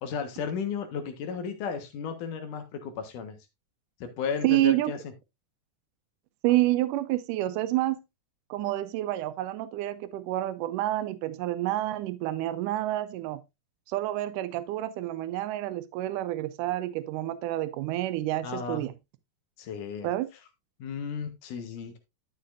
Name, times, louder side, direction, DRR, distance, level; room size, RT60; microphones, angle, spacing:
voice 1, 0.0-3.4 4.0-5.1 18.4-18.9 19.6-20.1 20.8-22.0, left 6 dB, 80° left, 2.9 m, -34 dB
voice 2, 4.4-4.9 6.4-8.0 8.5-13.4 13.9-18.9 20.0-20.3, right 15 dB, 90° right, 2.2 m, -28 dB
11.5 x 6.7 x 2.5 m
omnidirectional pair, 3.6 m